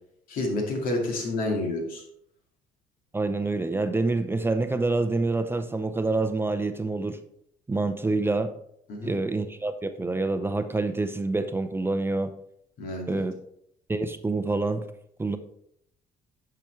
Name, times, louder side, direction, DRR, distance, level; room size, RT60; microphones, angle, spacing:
voice 1, 0.3-2.0 8.9-9.1 12.8-13.2, left 2 dB, 70° left, 1 dB, 2.3 m, -29 dB
voice 2, 3.1-7.2 7.7-8.5 9.0-12.3 13.1-13.3 13.9-14.8 15.2-15.4, right 3 dB, 15° right, 8 dB, 0.6 m, -27 dB
10.5 x 5.8 x 3.2 m, 0.73 s
cardioid pair, 100°, 15 cm